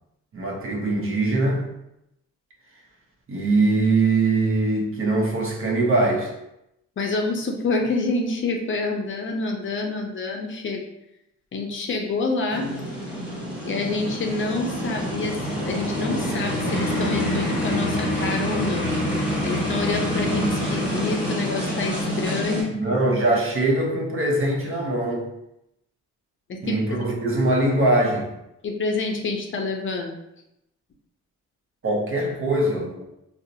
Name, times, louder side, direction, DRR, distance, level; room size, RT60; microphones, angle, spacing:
voice 1, 0.3-1.7 3.3-6.3 22.7-25.2 26.6-28.3 31.8-33.0, right 2 dB, 45° right, 0 dB, 0.8 m, -22 dB
voice 2, 7.0-10.8 11.5-12.7 13.6-15.4 15.6-18.9 19.4-22.8 26.5-27.0 28.6-30.1, left 3 dB, 40° left, 2 dB, 0.5 m, -27 dB
sound 1, 12.5-22.6, equal, 5° right, 1.2 m, -26 dB
3.9 x 2.0 x 2.7 m, 0.85 s
cardioid pair, 90°, 30 cm